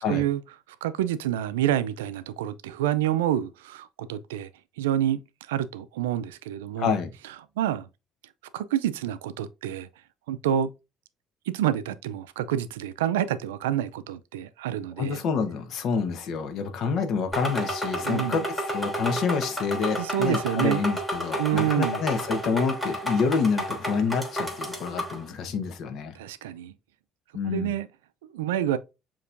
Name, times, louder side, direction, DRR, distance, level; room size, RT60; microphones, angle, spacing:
voice 1, 0.1-0.4 0.8-4.5 4.8-6.9 7.6-7.9 8.5-9.9 10.3-10.7 11.5-15.2 18.0-18.4 20.0-20.8 21.4-22.0 26.1-26.7 27.5-27.9 28.2-28.8, right 11 dB, 90° right, 0.4 m, -28 dB
voice 2, 6.8-7.1 15.0-26.1 27.3-27.7, left 5 dB, 65° left, 1.0 m, -28 dB
sound 1, 17.3-25.2, equal, 10° left, 3.1 m, -31 dB
6.7 x 3.0 x 2.5 m
hypercardioid pair, 60°, 0 cm